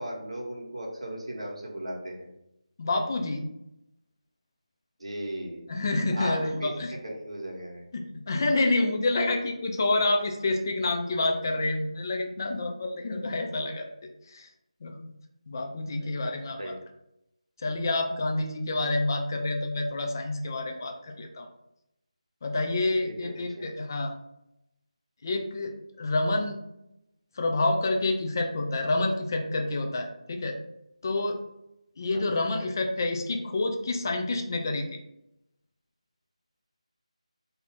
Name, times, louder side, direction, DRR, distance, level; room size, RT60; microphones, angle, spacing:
voice 1, 0.0-2.3 5.0-5.6 6.1-6.7 7.0-7.8 16.0-16.1 16.6-16.8 23.6-23.7 32.1-32.7, right 1 dB, 60° right, -2 dB, 0.9 m, -37 dB
voice 2, 2.8-3.4 5.7-6.9 7.9-13.9 14.3-14.5 14.8-14.9 15.5-16.7 17.6-21.5 22.4-24.1 25.2-26.6 27.3-30.6 31.0-31.4 32.0-35.0, left 2 dB, 30° left, 3 dB, 0.3 m, -28 dB
2.3 x 2.2 x 3.4 m, 0.83 s
figure-of-eight pair, 160°, 4 cm